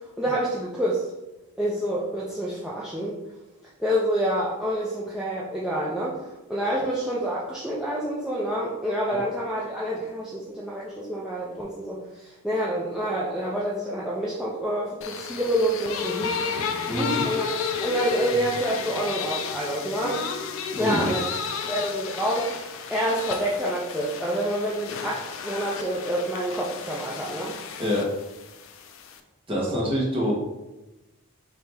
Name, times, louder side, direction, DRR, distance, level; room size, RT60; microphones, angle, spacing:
voice 1, 0.2-1.0 1.6-3.2 3.8-6.2 6.5-16.4 16.9-20.2 20.8-21.2 21.7-22.5 22.9-27.5, equal, 5° right, -7 dB, 0.4 m, -27 dB
sound 1, 15.0-29.2, left 6 dB, 60° left, 0.4 m, -33 dB
voice 2, 16.9-17.2 20.7-21.1 27.8-28.1 29.5-30.3, equal, 25° right, -4 dB, 1.1 m, -26 dB
4.4 x 2.9 x 3.3 m, 0.99 s
head